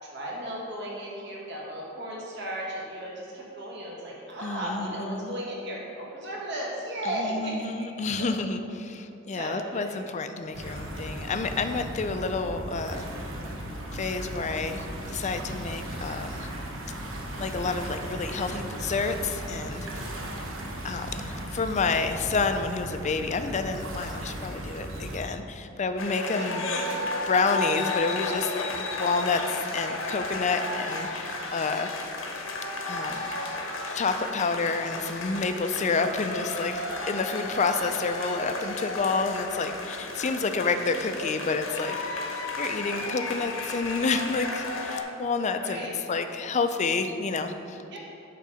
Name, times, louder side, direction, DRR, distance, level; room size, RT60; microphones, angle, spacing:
voice 1, 0.0-8.3 9.3-10.0 26.2-26.5 45.6-45.9 47.9-48.0, right 1 dB, 60° right, -4 dB, 1.7 m, -35 dB
voice 2, 4.4-5.3 7.0-13.0 13.9-16.5 17.4-20.5 20.8-26.7 27.0-31.9 32.9-33.3 33.9-42.2 42.6-48.0, left 4 dB, 35° left, 8 dB, 0.4 m, -29 dB
sound 1, 10.5-25.2, right 1 dB, 80° right, 1.2 m, -36 dB
sound 2, 26.0-45.0, left 2 dB, 85° left, 1.1 m, -33 dB
9.1 x 3.8 x 6.3 m, 2.7 s
head